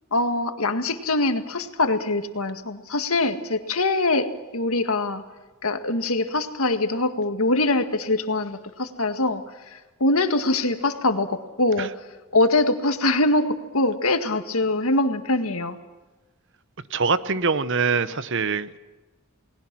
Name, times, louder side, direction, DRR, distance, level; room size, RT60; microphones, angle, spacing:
voice 1, 0.1-5.2 5.6-9.4 9.7-11.9 12.3-15.8, left 2 dB, 75° left, 7 dB, 1.9 m, -23 dB
voice 2, 16.9-18.8, right 5 dB, 55° right, 14 dB, 1.0 m, -24 dB
30.0 x 20.0 x 6.1 m, 1.2 s
head